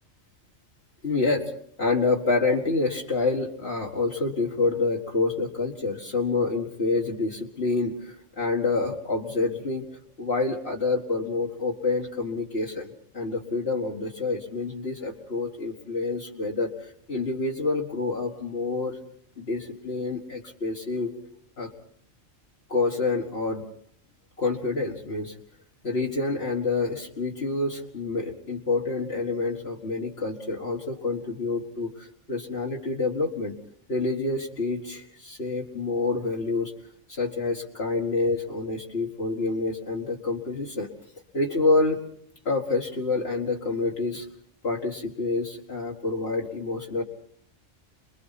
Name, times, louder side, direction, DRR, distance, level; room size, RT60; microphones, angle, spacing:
voice 1, 1.0-1.5 1.8-9.9 10.2-16.7 17.1-19.0 19.4-21.2 21.6-21.7 22.7-23.6 24.4-25.3 25.8-33.5 33.9-36.7 37.1-40.9 41.3-42.0 42.5-44.3 44.6-47.0, left 3 dB, 55° left, -1 dB, 2.1 m, -27 dB
28.5 x 22.0 x 4.2 m, 0.64 s
omnidirectional pair, 1.3 m